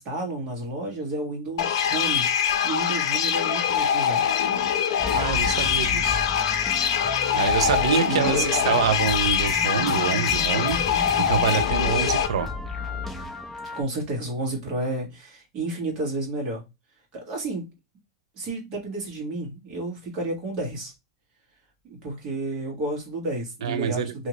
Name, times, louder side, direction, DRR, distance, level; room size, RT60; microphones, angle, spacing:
voice 1, 0.0-2.3 2.6-4.2 7.6-8.8 13.7-16.6 17.1-17.7 18.4-20.9 21.8-24.3, right 2 dB, 30° right, 1.2 m, -31 dB
sound 1, 1.6-12.3, left 8 dB, 70° left, 0.4 m, -23 dB
sound 2, 5.0-13.8, left 3 dB, 5° left, 0.4 m, -34 dB
voice 2, 5.1-6.2 7.3-10.8 11.2-12.5 23.6-24.3, right 7 dB, 85° right, 0.5 m, -26 dB
2.8 x 2.7 x 2.9 m
supercardioid pair, 170°, 3 cm